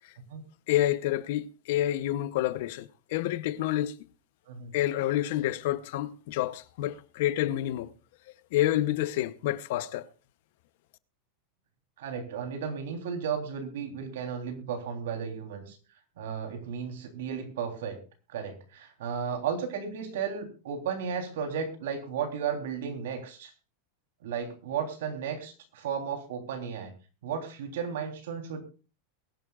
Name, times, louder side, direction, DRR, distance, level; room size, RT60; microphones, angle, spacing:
voice 1, 0.7-3.9 4.7-7.9 8.5-10.0, left 13 dB, 50° left, 0.8 m, -28 dB
voice 2, 12.0-15.8 16.2-18.0 18.3-23.5 24.2-26.9 27.2-28.6, right 7 dB, 75° right, 3.5 m, -34 dB
22.5 x 11.0 x 2.4 m
supercardioid pair, 175°, 0 cm